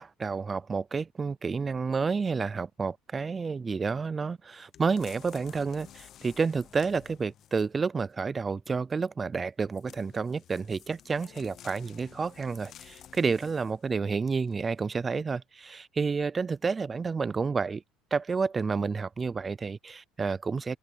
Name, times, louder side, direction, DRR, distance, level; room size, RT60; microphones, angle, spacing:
voice 1, 0.0-17.8 18.1-20.8, right 5 dB, 20° right, 0.4 m, -30 dB
sound 1, 4.7-7.7 9.7-13.9 14.5-14.6, left 10 dB, 45° left, 0.8 m, -52 dB
cardioid pair, 130°, 0 cm